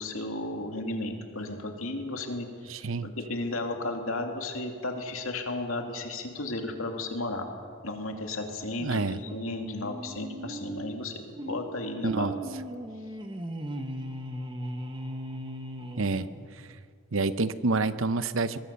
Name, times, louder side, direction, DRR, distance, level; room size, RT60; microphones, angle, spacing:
voice 1, 0.0-2.5 3.0-7.5 7.8-12.4, left 2 dB, 65° left, 3 dB, 2.7 m, -34 dB
voice 2, 2.7-3.1 8.8-9.2 12.0-12.3 16.0-16.3 17.1-18.6, right 3 dB, 60° right, 13 dB, 0.8 m, -27 dB
sound 1, 9.2-16.7, right 1 dB, 20° right, 1.4 m, -38 dB
22.5 x 21.0 x 7.0 m, 2.1 s
head